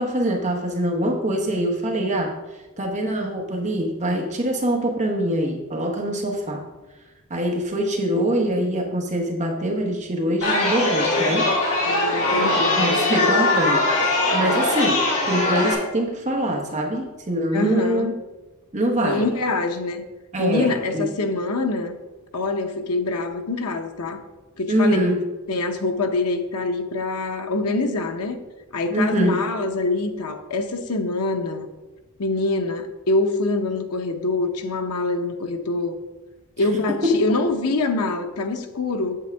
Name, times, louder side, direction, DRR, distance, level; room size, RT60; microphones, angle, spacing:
voice 1, 0.0-6.7 7.3-11.5 12.8-18.1 18.7-19.3 20.3-21.1 24.7-25.2 28.9-29.4 36.6-36.7 37.0-37.2, equal, 35° right, 2 dB, 0.9 m, -24 dB
Chatter, 10.4-15.7, left 2 dB, 75° left, 3.0 m, -21 dB
voice 2, 11.8-13.1 17.5-18.1 19.0-20.1 20.4-22.0 22.3-24.2 24.6-25.0 25.5-28.4 28.7-31.7 32.2-35.9 36.6-39.1, left 2 dB, 90° left, 6 dB, 0.9 m, -25 dB
8.0 x 7.9 x 3.4 m, 1.1 s
head